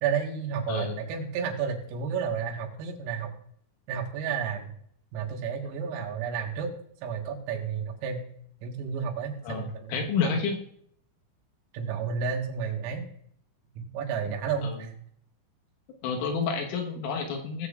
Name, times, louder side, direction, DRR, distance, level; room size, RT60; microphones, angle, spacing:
voice 1, 0.0-3.3 3.9-4.7 5.1-6.7 7.0-8.2 8.6-10.4 11.7-13.1 13.8-14.9, right 6 dB, 90° right, 1 dB, 4.3 m, -31 dB
voice 2, 0.7-1.0 9.4-10.6 14.6-14.9 16.0-17.7, left 5 dB, 80° left, 3 dB, 3.8 m, -30 dB
18.0 x 8.2 x 2.4 m, 0.67 s
omnidirectional pair, 5.9 m